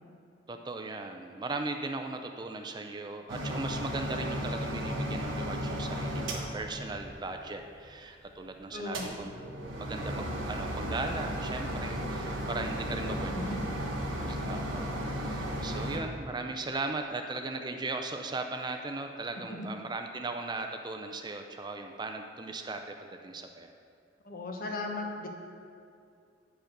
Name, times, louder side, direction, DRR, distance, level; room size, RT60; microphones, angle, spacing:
voice 1, 0.5-9.3 9.7-13.6 14.3-23.7, right 3 dB, 20° right, 5 dB, 0.4 m, -38 dB
sound 1, 3.3-7.6 8.8-16.0, equal, 90° right, 1.1 m, -35 dB
voice 2, 8.7-9.1 13.0-13.6 19.5-19.7 24.2-25.3, left 2 dB, 50° left, 2 dB, 1.0 m, -37 dB
8.9 x 4.9 x 6.5 m, 2.4 s
head